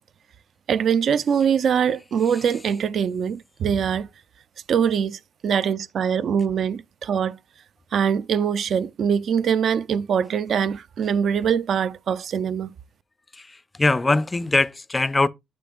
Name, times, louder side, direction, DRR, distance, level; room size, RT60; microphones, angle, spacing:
voice 1, 0.7-4.1 4.7-7.4 7.9-12.7, right 7 dB, 60° right, 0.4 m, -23 dB
voice 2, 13.3-15.3, left 2 dB, 20° left, 0.4 m, -22 dB
7.7 x 6.9 x 2.4 m
cardioid pair, 90°, 0 cm